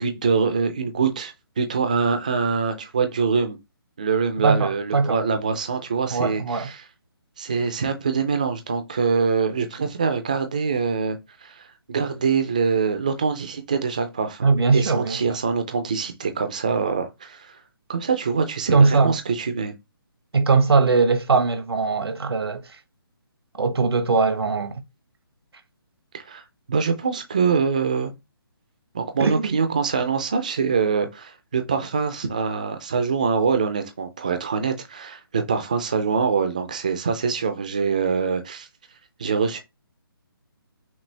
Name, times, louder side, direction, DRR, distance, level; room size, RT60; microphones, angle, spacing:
voice 1, 0.0-3.6 4.0-6.8 7.4-17.6 17.9-19.7 26.1-26.4 26.7-28.1 28.9-38.7 39.2-39.6, right 5 dB, 20° right, 0.4 m, -24 dB
voice 2, 4.4-5.2 6.1-6.7 14.4-15.2 18.7-19.1 20.3-22.8 23.6-24.8 29.2-29.6, right 4 dB, 85° right, 1.0 m, -20 dB
6.0 x 2.4 x 3.2 m
hypercardioid pair, 175°, 13 cm